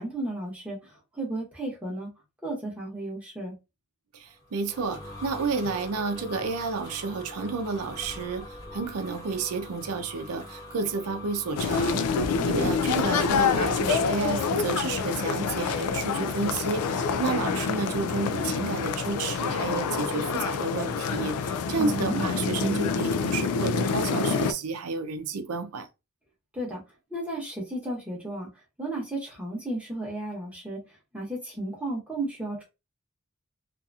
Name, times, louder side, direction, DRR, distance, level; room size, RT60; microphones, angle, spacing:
voice 1, 0.0-2.1 2.4-3.6 12.4-12.7 21.8-22.2 26.5-26.8 27.1-28.5 28.8-30.8 31.1-32.6, right 1 dB, 5° right, 0.9 m, -33 dB
voice 2, 4.1-25.9, right 4 dB, 85° right, 0.5 m, -31 dB
sound 1, 4.3-12.3, left 1 dB, 20° left, 0.8 m, -43 dB
sound 2, 11.6-24.5, left 5 dB, 90° left, 0.3 m, -27 dB
2.7 x 2.5 x 2.3 m
head